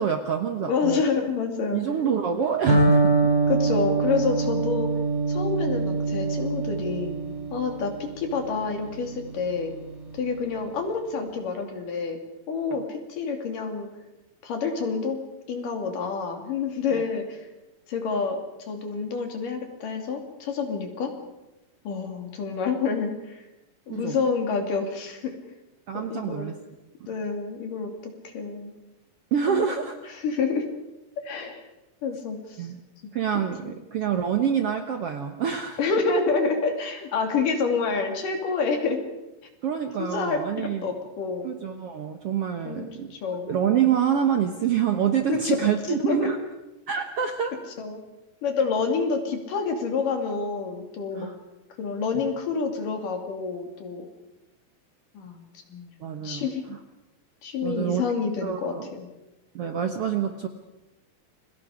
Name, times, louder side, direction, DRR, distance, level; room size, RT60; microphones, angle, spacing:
voice 1, 0.0-1.0 1.7-3.3 16.9-17.0 23.9-24.2 25.9-26.6 29.3-30.0 32.6-32.8 33.1-35.8 39.6-40.9 41.4-43.1 43.5-46.4 46.9-47.6 51.1-51.4 52.1-52.3 56.0-56.8 57.6-58.0 58.4-58.9 59.5-60.5, right 8 dB, 65° right, 6 dB, 1.5 m, -26 dB
voice 2, 0.6-1.8 3.5-4.9 5.3-7.2 7.5-9.7 10.1-12.2 12.5-13.9 14.4-15.2 15.5-17.5 17.9-18.4 18.7-21.1 21.8-23.5 23.9-25.4 25.9-26.5 27.1-28.7 29.5-29.6 30.1-30.6 31.2-31.6 32.0-32.7 33.6-33.7 35.8-39.0 40.0-40.4 40.8-41.5 42.7-43.5 45.3-45.6 45.9-46.3 47.8-48.0 48.4-51.3 51.8-54.1 55.1-55.9 56.2-56.6 57.4-59.1, left 5 dB, 70° left, 4 dB, 4.3 m, -28 dB
Electric guitar, 2.7-10.5, right 3 dB, 80° right, 9.4 m, -25 dB
29.5 x 23.0 x 5.0 m, 0.99 s
omnidirectional pair, 4.0 m